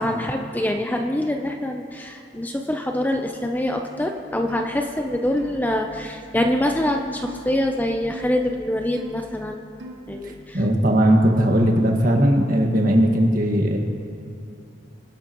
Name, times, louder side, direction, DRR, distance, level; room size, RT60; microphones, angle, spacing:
voice 1, 0.0-9.6 10.1-10.6, left 1 dB, 10° left, 3 dB, 0.6 m, -25 dB
sound 1, 3.7-3.9 4.5-4.8 5.4-5.6 6.4-6.7 7.3-7.5 8.1-8.3 9.0-9.2 9.8-10.1, left 1 dB, 65° right, 1.5 m, -40 dB
voice 2, 10.2-13.8, equal, 45° right, 1 dB, 1.7 m, -18 dB
25.0 x 11.5 x 3.0 m, 2.6 s
head